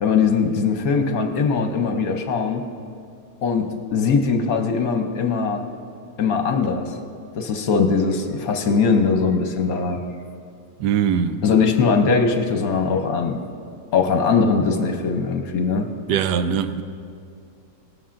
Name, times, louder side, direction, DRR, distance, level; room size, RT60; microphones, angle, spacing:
voice 1, 0.0-2.6 3.4-5.6 6.2-6.9 7.3-10.0 11.4-13.4 13.9-15.9, left 5 dB, 65° left, 1.2 m, -20 dB
voice 2, 10.8-11.4 16.1-16.8, right 8 dB, 85° right, 1.2 m, -21 dB
18.0 x 13.0 x 2.5 m
omnidirectional pair, 1.7 m